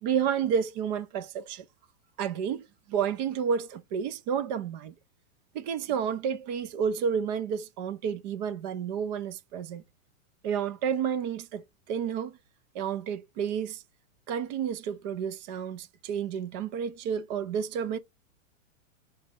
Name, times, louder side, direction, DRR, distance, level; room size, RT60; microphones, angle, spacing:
voice 1, 0.0-1.6 2.2-4.9 5.5-9.8 10.4-12.4 12.7-13.8 14.3-18.0, right 7 dB, 35° right, 0.5 m, -30 dB
3.9 x 3.2 x 3.6 m
hypercardioid pair, 140°, 39 cm